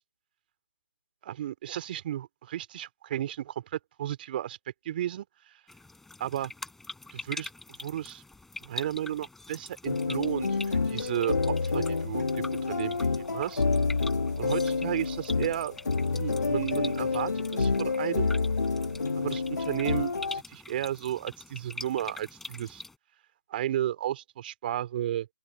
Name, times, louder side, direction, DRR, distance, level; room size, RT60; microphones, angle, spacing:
voice 1, 1.2-4.6 4.8-5.3 6.2-6.5 7.1-7.5 7.8-8.2 8.6-13.6 14.4-15.7 16.1-18.3 19.2-22.8 23.5-25.3, right 12 dB, 30° right, 2.9 m, -33 dB
sound 1, 5.7-23.0, left 3 dB, 5° left, 4.7 m, -44 dB
sound 2, 9.9-20.4, left 4 dB, 70° left, 1.7 m, -28 dB
open air
figure-of-eight pair, 150°, 10 cm